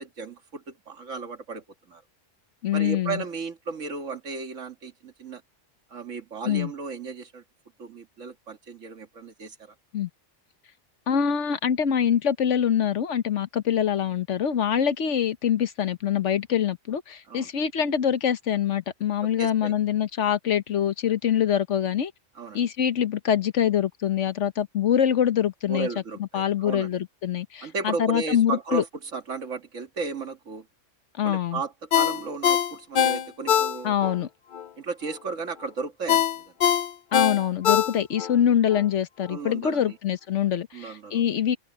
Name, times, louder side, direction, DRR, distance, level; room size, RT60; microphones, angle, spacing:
voice 1, 0.0-2.0 2.7-5.4 5.9-7.4 7.8-9.7 17.3-17.5 19.4-19.7 22.4-22.6 25.7-27.0 27.6-30.7 31.2-34.0 34.8-36.5 39.3-40.0 40.7-41.2, right 4 dB, 90° right, 2.1 m, -34 dB
voice 2, 2.6-3.2 6.4-6.7 9.9-10.1 11.1-22.1 22.5-25.9 26.3-28.8 31.1-31.6 33.8-34.3 37.1-41.6, left 9 dB, 70° left, 1.3 m, -24 dB
Ringtone, 31.9-34.2 34.5-34.7 36.1-38.3 38.7-38.8, left 9 dB, 55° left, 0.6 m, -22 dB
omnidirectional pair, 1.3 m